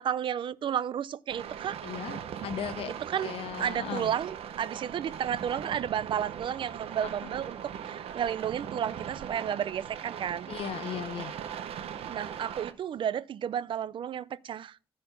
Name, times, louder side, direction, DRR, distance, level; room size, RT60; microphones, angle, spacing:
voice 1, 0.0-1.8 3.0-10.5 12.1-14.8, right 9 dB, 50° right, 0.5 m, -32 dB
sound 1, 1.3-12.7, right 8 dB, 70° right, 0.9 m, -40 dB
voice 2, 1.8-3.0 3.2-4.1 10.5-11.4, left 10 dB, 65° left, 0.6 m, -37 dB
10.5 x 4.3 x 7.9 m
cardioid pair, 105°, 11 cm